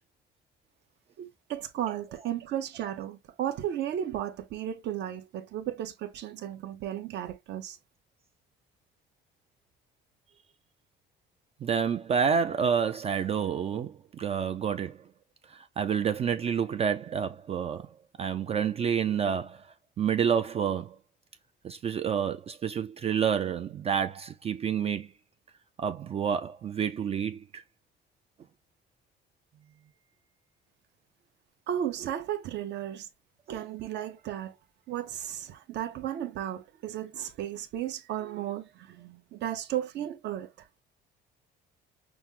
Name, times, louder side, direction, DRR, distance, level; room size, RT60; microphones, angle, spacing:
voice 1, 1.2-7.8 31.7-33.1 33.5-34.5 34.9-40.5, right 11 dB, 60° right, 1.0 m, -34 dB
voice 2, 11.6-15.1 15.5-19.7 20.0-21.0 21.6-25.1 25.8-27.6, right 7 dB, 30° right, 0.4 m, -29 dB
6.1 x 2.0 x 3.5 m
cardioid pair, 140°, 20 cm